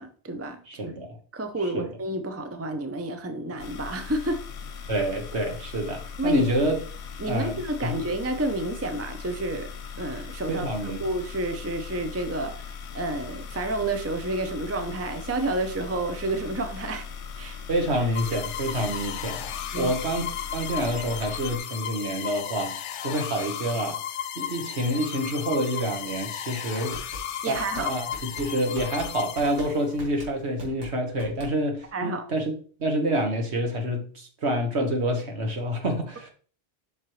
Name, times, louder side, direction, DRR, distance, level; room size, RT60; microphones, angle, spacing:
voice 1, 0.0-0.9 1.3-4.4 6.2-6.5 7.2-9.7 10.0-10.7 11.0-17.1 17.4-17.6 19.7-19.9 27.4-27.9 31.9-32.2, right 2 dB, 15° right, 0.6 m, -30 dB
voice 2, 0.7-1.2 1.7-1.8 4.9-6.8 7.3-8.0 10.5-11.0 17.7-24.0 24.4-27.0 27.5-28.0 28.3-32.5 32.8-36.3, right 1 dB, 65° right, 1.7 m, -28 dB
sound 1, 3.6-21.6, left 6 dB, 70° left, 1.0 m, -39 dB
sound 2, 18.1-30.0, left 9 dB, 85° left, 0.9 m, -35 dB
sound 3, 26.9-31.9, left 1 dB, 85° right, 2.5 m, -41 dB
7.6 x 5.9 x 3.2 m
omnidirectional pair, 1.2 m